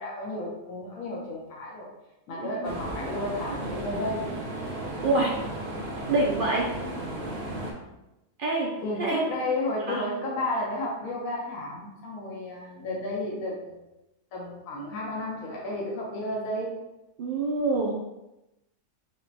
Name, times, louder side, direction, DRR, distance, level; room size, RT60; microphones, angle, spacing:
voice 1, 0.0-1.9 2.3-4.3 5.0-5.3 8.8-13.8 14.3-16.8, left 1 dB, 75° left, -3 dB, 1.2 m, -32 dB
voice 2, 2.4-2.7 5.0-5.4 6.1-6.7 8.4-8.7 9.0-9.2 9.9-10.0 17.2-17.9, right 2 dB, 75° right, -2 dB, 0.4 m, -26 dB
sound 1, 2.6-7.7, right 1 dB, 60° right, 0.8 m, -34 dB
5.0 x 2.1 x 2.7 m, 0.95 s
omnidirectional pair, 1.4 m